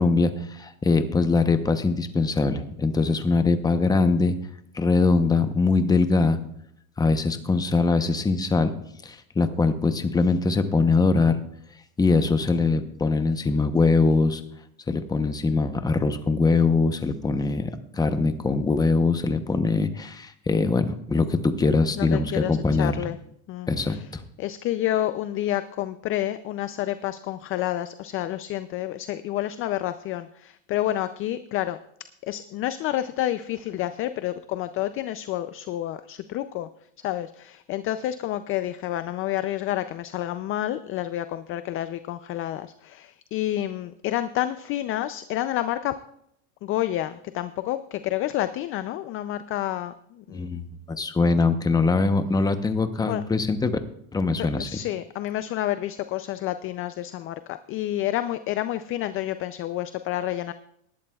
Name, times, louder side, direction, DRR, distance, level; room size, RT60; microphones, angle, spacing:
voice 1, 0.0-4.3 4.7-6.4 7.0-8.7 9.0-11.4 12.0-14.4 14.9-23.1 23.7-24.2 50.3-53.8 54.1-54.8, left 3 dB, 10° left, 9 dB, 0.7 m, -22 dB
voice 2, 22.0-23.2 23.5-24.0 24.4-31.8 32.2-36.7 37.0-45.9 46.6-50.5 53.1-53.2 54.6-60.5, left 13 dB, 35° left, 12 dB, 0.4 m, -29 dB
19.0 x 11.5 x 2.3 m, 0.73 s
supercardioid pair, 135°, 41 cm